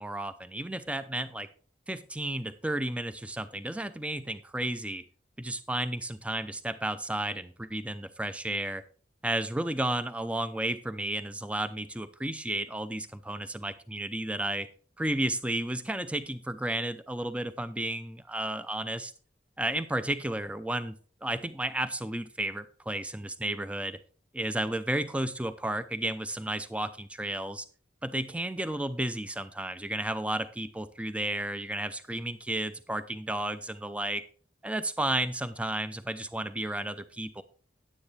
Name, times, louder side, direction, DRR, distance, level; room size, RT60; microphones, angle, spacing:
voice 1, 0.0-1.5 1.9-5.0 5.4-8.8 9.2-14.7 15.0-19.1 19.6-21.0 21.2-24.0 24.3-27.7 28.0-34.2 34.6-37.4, right 1 dB, 5° right, 12 dB, 0.5 m, -32 dB
9.6 x 9.6 x 3.3 m, 0.41 s
head